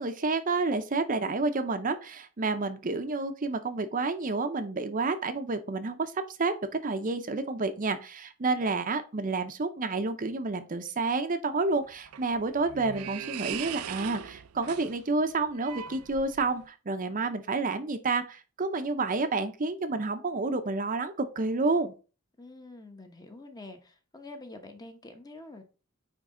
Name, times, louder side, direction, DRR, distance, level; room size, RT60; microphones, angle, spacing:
voice 1, 0.0-6.5 6.8-21.9, right 3 dB, 40° right, 8 dB, 0.6 m, -29 dB
sound 1, 11.7-16.7, right 9 dB, 80° right, 0.5 m, -40 dB
voice 2, 22.4-25.6, left 2 dB, 15° left, 6 dB, 0.9 m, -46 dB
9.1 x 3.2 x 3.7 m, 0.34 s
head